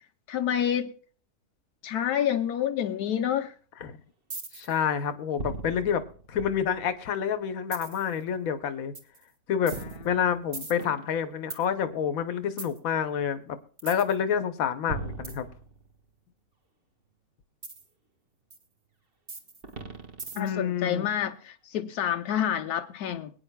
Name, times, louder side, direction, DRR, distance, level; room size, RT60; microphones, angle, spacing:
voice 1, 0.3-0.9 1.8-3.5 20.3-23.3, left 9 dB, 85° left, 1.3 m, -28 dB
sound 1, 4.3-4.8 5.4-7.0 7.7-8.1 8.9-9.2 9.7-11.6 12.6-12.8 13.8-14.1 14.9-16.0 17.6-17.8 18.5-18.6 19.3-20.7, right 3 dB, 40° right, 1.7 m, -38 dB
voice 2, 4.5-6.0 6.3-8.9 9.5-9.8 10.0-15.5 20.4-21.1, left 8 dB, 65° left, 1.3 m, -28 dB
22.0 x 9.7 x 2.3 m
omnidirectional pair, 1.6 m